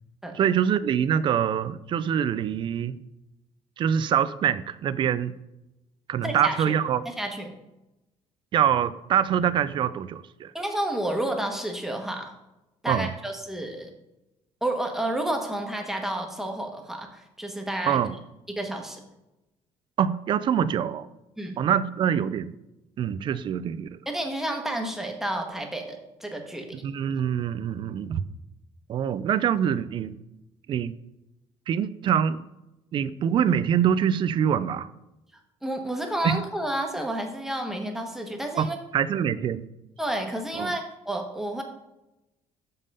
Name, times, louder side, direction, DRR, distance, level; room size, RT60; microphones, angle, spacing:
voice 1, 0.3-3.0 3.8-5.3 6.1-7.0 8.5-10.5 12.9-13.1 17.9-18.2 20.0-21.1 21.6-22.6 23.0-24.0 26.7-28.3 28.9-30.1 30.7-30.9 31.7-32.4 32.9-34.9 36.2-36.4 38.6-38.7 38.9-39.7 40.5-40.7, right 8 dB, 40° right, 15 dB, 0.4 m, -24 dB
voice 2, 6.2-6.8 7.0-7.5 10.5-12.3 12.8-13.9 14.6-18.0 18.5-19.0 21.4-21.6 24.1-26.8 35.6-38.8 40.0-41.6, right 1 dB, 5° right, 2 dB, 1.1 m, -30 dB
6.8 x 5.4 x 5.4 m, 0.94 s
cardioid pair, 145°, 12 cm